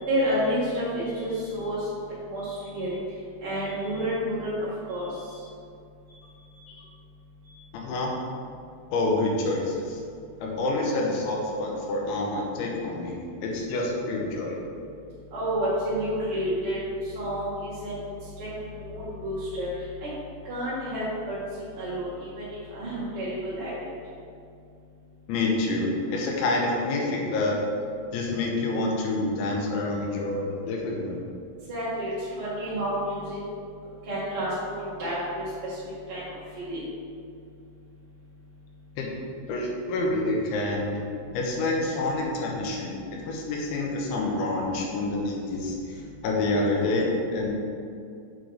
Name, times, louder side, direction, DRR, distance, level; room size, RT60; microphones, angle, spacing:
voice 1, 0.0-1.9 2.3-3.0 3.4-5.2 15.3-16.8 17.1-20.1 20.4-21.4 21.7-22.4 22.7-23.7 31.7-33.4 34.0-34.5 34.8-35.8 36.1-36.2 36.5-36.8, equal, 50° right, -11 dB, 1.7 m, -30 dB
voice 2, 7.7-8.1 8.9-10.0 10.4-14.6 25.3-27.6 28.1-31.3 39.0-39.1 39.5-41.0 41.3-47.5, left 2 dB, 85° left, -1 dB, 3.3 m, -27 dB
7.5 x 3.9 x 4.8 m, 2.4 s
omnidirectional pair, 5.1 m